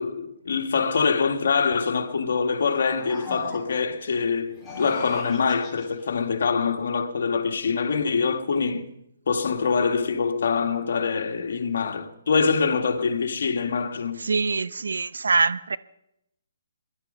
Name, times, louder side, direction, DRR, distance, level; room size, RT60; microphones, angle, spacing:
voice 1, 0.0-8.9 9.3-14.2, left 5 dB, 65° left, 1.6 m, -24 dB
sound 1, 2.6-4.0 4.5-6.1, left 3 dB, 5° left, 2.2 m, -39 dB
voice 2, 14.2-15.8, right 4 dB, 85° right, 0.7 m, -24 dB
19.0 x 11.5 x 5.5 m
hypercardioid pair, 155°, 0 cm